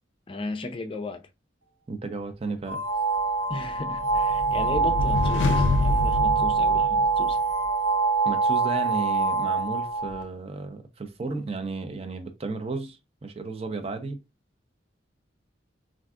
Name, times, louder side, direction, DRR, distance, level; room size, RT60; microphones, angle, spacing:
voice 1, 0.3-1.2 3.5-7.4, left 2 dB, 30° left, 0.4 m, -35 dB
voice 2, 1.9-2.8 8.2-14.2, right 3 dB, 30° right, 0.5 m, -33 dB
sound 1, 2.7-10.2, right 4 dB, 90° right, 0.7 m, -25 dB
sound 2, 3.6-7.5, left 2 dB, 85° left, 0.5 m, -26 dB
2.5 x 2.3 x 3.5 m
head